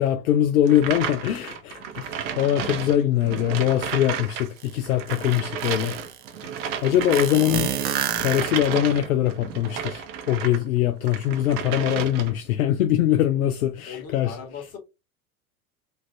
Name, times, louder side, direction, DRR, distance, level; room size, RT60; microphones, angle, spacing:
voice 1, 0.0-5.9 6.8-7.7 8.2-14.4, left 12 dB, 80° left, 0.5 m, -22 dB
sound 1, 0.7-10.6 11.0-12.5, right 7 dB, 55° right, 0.9 m, -32 dB
sound 2, 4.6-4.7 5.1-6.2 7.1-8.9, right 9 dB, 25° right, 0.4 m, -28 dB
voice 2, 13.9-14.8, left 7 dB, 35° left, 1.5 m, -38 dB
3.2 x 2.5 x 3.2 m
hypercardioid pair, 85°, 43 cm